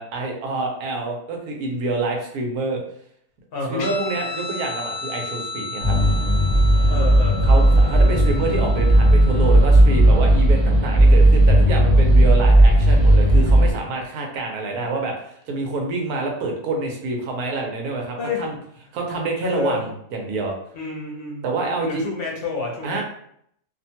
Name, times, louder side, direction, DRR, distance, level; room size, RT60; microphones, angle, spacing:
voice 1, 0.0-2.8 3.7-6.0 7.5-18.5 18.9-20.5 21.4-22.0 22.8-23.0, right 3 dB, 85° right, 1 dB, 1.2 m, -27 dB
voice 2, 3.5-3.9 6.9-7.6 18.2-18.5 19.4-19.8 20.7-21.5 21.8-23.0, left 3 dB, 50° left, -1 dB, 0.8 m, -28 dB
Guitar, 3.8-10.7, left 3 dB, 75° left, 1.0 m, -34 dB
sound 1, 5.8-13.7, right 1 dB, ahead, 0.8 m, -15 dB
2.8 x 2.2 x 2.7 m, 0.69 s
omnidirectional pair, 1.5 m